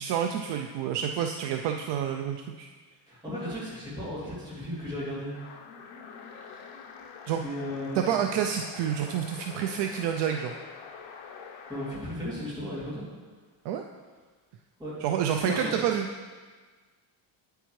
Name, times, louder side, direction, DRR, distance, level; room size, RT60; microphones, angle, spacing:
voice 1, 0.0-2.7 7.3-7.4 8.0-10.5 13.6-13.8 15.0-16.1, right 9 dB, 60° right, 4 dB, 0.5 m, -28 dB
voice 2, 3.1-5.3 6.3-6.7 7.4-8.1 11.7-13.0 14.8-15.0 15.4-15.7, left 1 dB, 10° right, -9 dB, 2.6 m, -35 dB
sound 1, 5.3-12.1, left 6 dB, 80° left, 0.9 m, -45 dB
9.2 x 8.1 x 3.1 m, 1.4 s
cardioid pair, 180°, 48 cm